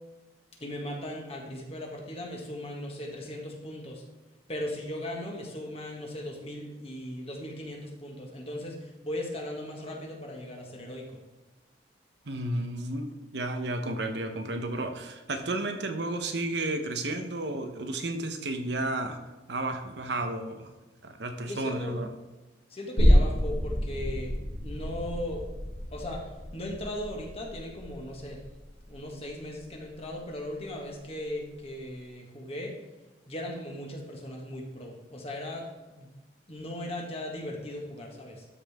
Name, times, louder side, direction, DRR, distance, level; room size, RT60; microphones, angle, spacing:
voice 1, 0.6-4.0 4.5-11.2 21.5-22.0 22.7-24.3 24.6-25.5 25.9-28.4 28.9-32.7 33.3-36.1 36.5-38.5, left 1 dB, 35° left, 0 dB, 1.8 m, -38 dB
voice 2, 12.3-19.2 19.5-20.7 21.0-22.1, right 2 dB, 70° right, 6 dB, 1.0 m, -32 dB
sound 1, 23.0-30.3 30.6-30.7, equal, 65° left, 2.6 m, -28 dB
12.5 x 5.6 x 3.6 m, 1.1 s
head